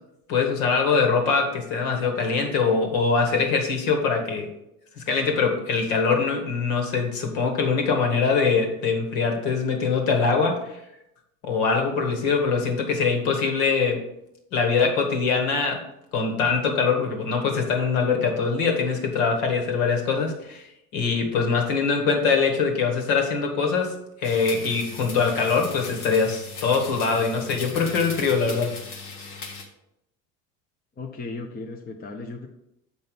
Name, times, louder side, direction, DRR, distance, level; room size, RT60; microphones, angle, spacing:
voice 1, 0.3-4.5 5.0-10.8 11.4-14.0 14.5-15.8 16.1-20.6 20.9-28.8, left 5 dB, 60° left, 3 dB, 1.9 m, -23 dB
sound 1, 24.2-29.6, left 4 dB, 80° left, 1.4 m, -38 dB
voice 2, 31.0-32.5, left 3 dB, 20° left, 3 dB, 0.9 m, -36 dB
7.0 x 5.2 x 5.3 m, 0.84 s
figure-of-eight pair, 70°, 45 cm